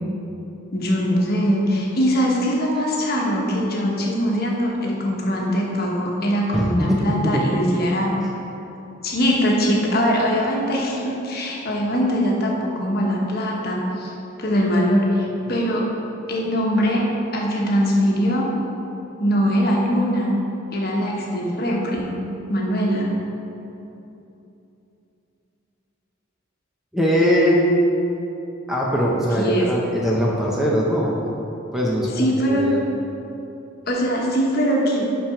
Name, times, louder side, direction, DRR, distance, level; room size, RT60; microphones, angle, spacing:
voice 1, 0.7-8.1 9.0-14.1 14.4-15.9 16.3-17.1 17.3-18.5 19.2-20.3 20.7-22.1 22.5-23.2 29.4-29.7 32.2-32.7 33.9-35.1, equal, 50° left, -2 dB, 1.1 m, -21 dB
voice 2, 6.5-7.5 26.9-27.8 28.7-31.2 31.7-32.8, equal, ahead, -4 dB, 0.6 m, -21 dB
5.9 x 5.1 x 5.8 m, 2.9 s
head